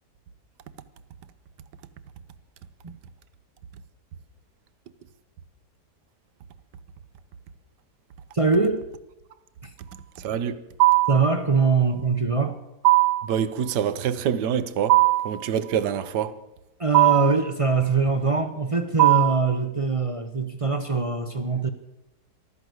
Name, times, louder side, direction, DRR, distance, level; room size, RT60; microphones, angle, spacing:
voice 1, 8.3-8.8 9.6-9.7 11.1-12.6 16.8-21.7, right 4 dB, 35° right, 0.5 m, -23 dB
voice 2, 10.2-10.6 13.2-15.0 15.2-16.4, right 8 dB, 85° right, 1.4 m, -26 dB
sound 1, 10.8-11.3 12.8-13.3 14.9-15.4 16.9-17.4 19.0-19.5, right 19 dB, 60° right, 1.0 m, -18 dB
15.0 x 12.5 x 7.9 m
omnidirectional pair, 1.7 m